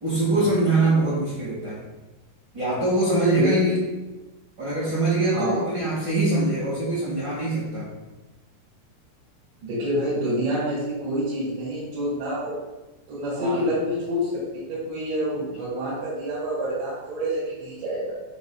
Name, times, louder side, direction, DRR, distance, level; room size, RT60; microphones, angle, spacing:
voice 1, 0.0-1.8 2.5-3.8 4.6-7.9 13.4-13.6, right 2 dB, 40° right, -8 dB, 1.7 m, -23 dB
voice 2, 3.4-3.7 5.3-5.5 9.6-12.6 13.1-18.1, equal, 80° right, -10 dB, 4.8 m, -27 dB
9.6 x 6.4 x 2.4 m, 1.1 s
omnidirectional pair, 5.0 m